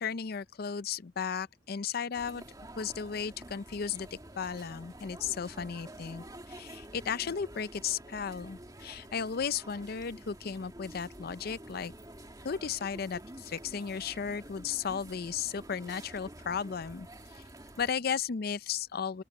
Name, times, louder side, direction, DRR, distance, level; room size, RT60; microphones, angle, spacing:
voice 1, 0.0-2.4 2.8-11.9 12.4-17.4 17.8-19.2, left 6 dB, 55° left, 0.5 m, -35 dB
sound 1, 2.1-17.9, right 1 dB, 20° right, 2.2 m, -49 dB
open air
head